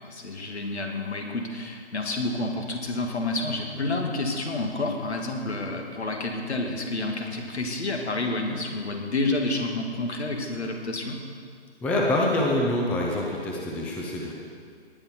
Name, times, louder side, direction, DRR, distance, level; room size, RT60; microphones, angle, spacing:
voice 1, 0.0-11.2, left 2 dB, 75° left, 2 dB, 2.4 m, -29 dB
voice 2, 11.8-14.3, left 1 dB, 5° left, -1 dB, 0.5 m, -25 dB
19.0 x 9.1 x 4.6 m, 2.1 s
figure-of-eight pair, 140°, 33 cm